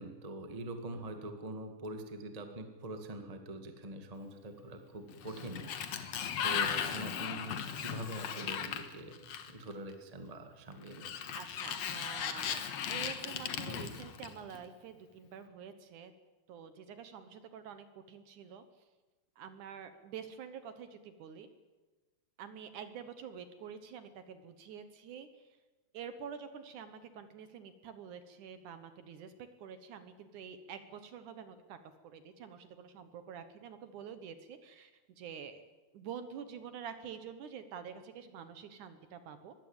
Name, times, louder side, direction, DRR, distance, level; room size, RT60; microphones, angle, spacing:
voice 1, 0.0-11.3, right 1 dB, 50° right, 6 dB, 0.4 m, -44 dB
voice 2, 0.9-1.3 11.3-12.6 12.9-16.1 16.5-18.6 19.4-21.5 22.4-25.5 25.9-29.3 29.6-31.8 32.0-35.6 35.9-39.5, right 7 dB, 65° right, 10 dB, 2.1 m, -47 dB
Sliding door, 5.1-9.7 10.9-14.6, left 8 dB, 60° left, 1.9 m, -37 dB
22.0 x 16.0 x 8.9 m, 1.2 s
omnidirectional pair, 4.6 m